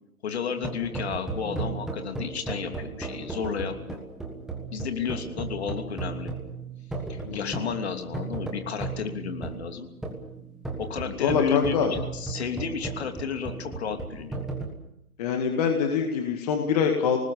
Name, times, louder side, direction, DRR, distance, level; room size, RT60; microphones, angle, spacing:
voice 1, 0.2-4.0 4.7-6.3 7.1-9.9 10.8-14.4, left 7 dB, 45° left, 5 dB, 3.0 m, -32 dB
sound 1, 0.6-14.7, right 3 dB, ahead, 1.4 m, -35 dB
voice 2, 7.2-7.7 11.1-11.9 15.2-17.2, left 6 dB, 25° left, 3 dB, 2.0 m, -25 dB
27.0 x 19.5 x 6.9 m, 0.82 s
hypercardioid pair, 160°, 44 cm